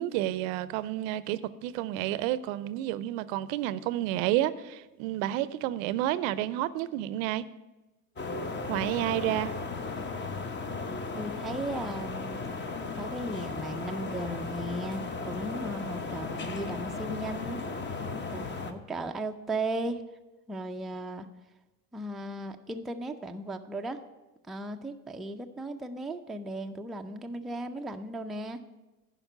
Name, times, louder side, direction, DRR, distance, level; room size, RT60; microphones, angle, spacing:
voice 1, 0.0-7.4 8.7-9.5, right 14 dB, 65° right, 0.6 m, -30 dB
sound 1, 8.2-18.7, left 4 dB, 25° left, 0.9 m, -36 dB
voice 2, 11.1-17.6 18.3-20.0 20.5-21.3 21.9-24.0 24.5-28.7, right 1 dB, ahead, 0.4 m, -36 dB
11.0 x 5.1 x 6.7 m
hypercardioid pair, 75°, 45 cm